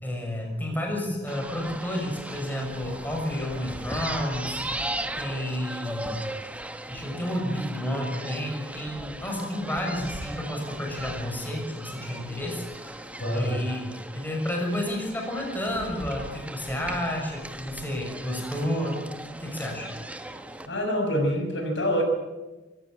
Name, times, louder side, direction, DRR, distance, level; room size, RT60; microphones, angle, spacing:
voice 1, 0.0-6.4 6.9-13.0 13.3-19.0 19.4-19.9, left 1 dB, 10° left, 1 dB, 6.6 m, -31 dB
sound 1, 1.3-20.7, right 1 dB, 10° right, 1.4 m, -38 dB
voice 2, 13.2-13.6 20.7-22.0, equal, 90° left, 3 dB, 6.5 m, -26 dB
26.0 x 16.0 x 9.0 m, 1.1 s
head